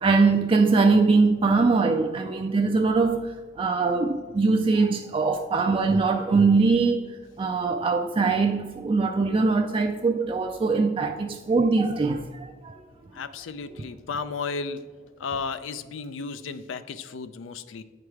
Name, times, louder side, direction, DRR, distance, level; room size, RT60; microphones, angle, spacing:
voice 1, 0.0-7.1 7.4-12.8, right 4 dB, 25° right, 0.3 m, -22 dB
voice 2, 13.1-14.8 15.2-17.8, left 5 dB, 80° left, 0.4 m, -34 dB
8.6 x 4.7 x 4.7 m
head